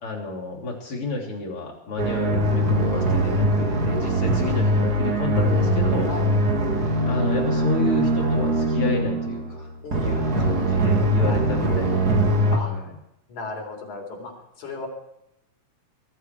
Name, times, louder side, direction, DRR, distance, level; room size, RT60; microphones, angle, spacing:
voice 1, 0.0-6.1 7.1-12.1 12.6-12.9, left 2 dB, 45° left, 0 dB, 4.2 m, -31 dB
sound 1, 2.0-12.6, right 1 dB, 35° right, 2.2 m, -22 dB
voice 2, 9.8-10.4 11.2-11.8 12.5-12.7 13.3-14.3 14.6-14.9, left 2 dB, 80° left, 0 dB, 5.1 m, -35 dB
22.5 x 13.0 x 4.7 m, 0.81 s
omnidirectional pair, 3.4 m